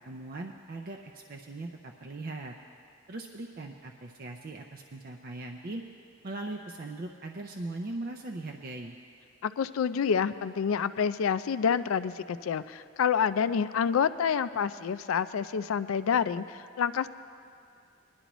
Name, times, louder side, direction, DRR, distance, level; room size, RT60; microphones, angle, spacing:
voice 1, 0.0-2.5 3.1-5.8 6.2-9.0, right 2 dB, 45° right, 3 dB, 0.5 m, -39 dB
voice 2, 9.4-17.1, left 7 dB, 85° left, 13 dB, 0.4 m, -28 dB
20.0 x 11.0 x 3.0 m, 2.3 s
head